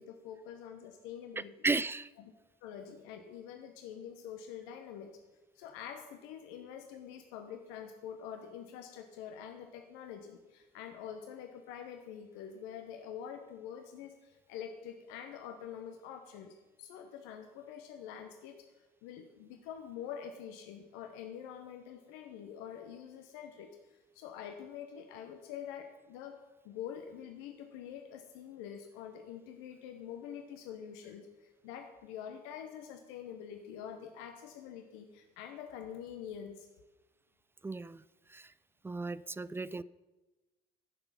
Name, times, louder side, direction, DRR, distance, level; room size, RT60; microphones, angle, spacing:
voice 1, 0.0-1.7 2.6-5.2 5.5-26.4 26.6-36.7 39.2-39.6, left 8 dB, 65° left, 6 dB, 1.0 m, -46 dB
voice 2, 1.4-2.1 37.6-38.0 38.3-38.5 38.8-39.8, right 3 dB, 10° right, 19 dB, 0.4 m, -35 dB
16.0 x 6.8 x 5.6 m, 1.1 s
figure-of-eight pair, 55°, 21 cm